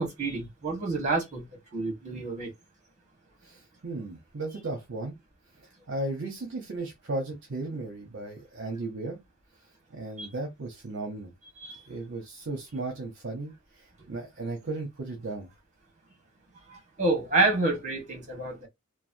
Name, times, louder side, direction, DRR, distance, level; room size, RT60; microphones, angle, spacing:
voice 1, 0.0-1.4 1.7-2.5 10.2-10.3 11.6-11.8 16.7-18.7, right 3 dB, 35° right, 1.3 m, -28 dB
voice 2, 3.4-5.2 5.6-9.2 9.9-11.3 11.9-15.5, right 2 dB, 55° right, 0.7 m, -35 dB
3.1 x 2.2 x 2.6 m
head